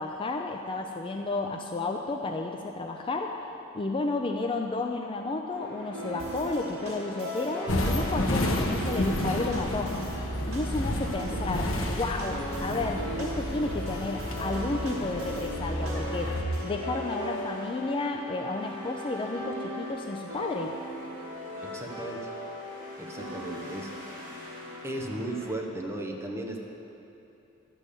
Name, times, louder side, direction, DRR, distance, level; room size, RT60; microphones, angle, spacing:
voice 1, 0.0-3.4 3.7-10.0 10.5-20.7, left 3 dB, 25° left, 3 dB, 0.4 m, -32 dB
sound 1, 5.5-25.5, equal, 40° right, 2.9 m, -38 dB
sound 2, 6.2-16.9, right 1 dB, 85° right, 2.6 m, -47 dB
sound 3, 7.7-16.4, left 1 dB, 85° left, 1.1 m, -31 dB
voice 2, 21.6-22.3 23.0-23.9 24.8-26.6, right 1 dB, 15° right, 1 dB, 0.9 m, -36 dB
11.5 x 5.4 x 8.3 m, 2.9 s
head